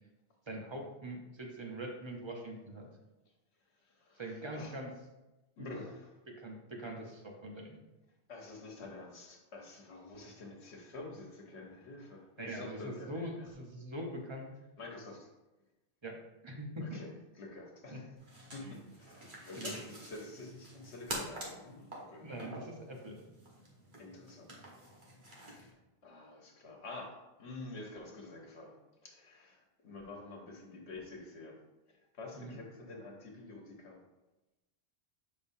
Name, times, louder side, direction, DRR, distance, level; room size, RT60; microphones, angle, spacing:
voice 1, 0.5-2.9 4.2-4.9 5.6-5.7 6.3-7.8 12.4-14.5 16.0-17.0 17.9-18.0 18.6-18.8 19.6-19.8 22.2-23.2 32.3-32.6, right 1 dB, 30° right, 1 dB, 0.9 m, -43 dB
voice 2, 5.6-6.2 8.3-13.5 14.8-15.3 16.8-17.1 17.4-18.1 18.5-22.2 24.0-24.7 25.4-25.7 26.0-28.8 29.0-31.6 31.9-34.0, left 2 dB, 80° left, 0 dB, 1.3 m, -48 dB
sound 1, 18.2-25.7, right 1 dB, 50° right, 1.4 m, -47 dB
6.9 x 5.1 x 2.7 m, 1.0 s
omnidirectional pair, 1.1 m